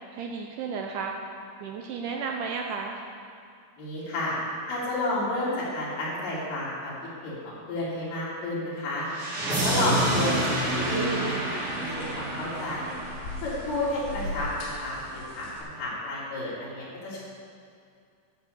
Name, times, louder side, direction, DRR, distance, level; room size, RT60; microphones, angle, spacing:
voice 1, 0.1-1.1 1.6-3.0 9.7-9.9, right 5 dB, 80° right, 2 dB, 2.0 m, -33 dB
voice 2, 3.8-4.4 4.7-6.9 7.2-9.1 9.5-13.0 13.4-17.2, left 1 dB, 90° left, -7 dB, 5.0 m, -31 dB
sound 1, 9.1-14.0, right 1 dB, 35° right, 4.3 m, -29 dB
sound 2, 10.5-15.6, left 1 dB, 75° left, 4.0 m, -40 dB
12.5 x 6.8 x 6.6 m, 2.4 s
omnidirectional pair, 4.3 m